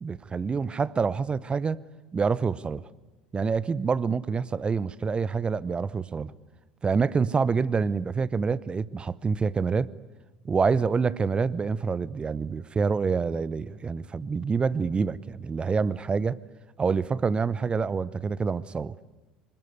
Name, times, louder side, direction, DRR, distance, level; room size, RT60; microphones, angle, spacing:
voice 1, 0.0-1.8 2.1-2.8 3.3-6.3 6.8-9.9 10.4-16.4 16.8-18.9, right 5 dB, 25° right, 20 dB, 0.8 m, -27 dB
26.0 x 22.5 x 9.7 m, 1.2 s
figure-of-eight pair, 65°, 4 cm